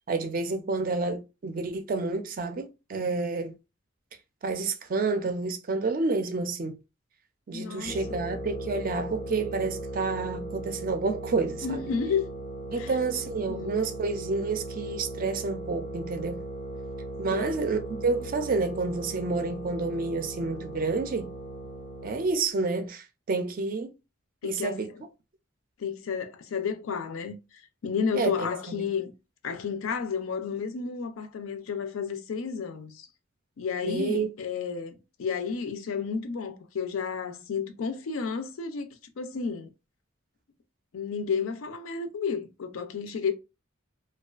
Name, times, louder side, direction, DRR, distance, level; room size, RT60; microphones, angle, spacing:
voice 1, 0.1-3.5 4.4-6.8 7.5-11.8 12.7-16.4 17.2-21.3 22.0-23.9 24.4-24.9 28.1-28.5 28.8-28.9 33.8-34.3, right 3 dB, 45° right, 0.3 m, -29 dB
voice 2, 7.5-8.2 11.6-12.3 12.8-12.9 13.5-13.7 17.3-17.7 24.4-25.0 25.8-27.4 27.8-29.1 29.4-33.1 33.6-38.9 39.2-39.7 40.9-43.3, left 6 dB, 85° left, 0.4 m, -32 dB
sound 1, 7.9-22.4, right 1 dB, 25° left, 0.4 m, -38 dB
2.4 x 2.3 x 2.3 m
head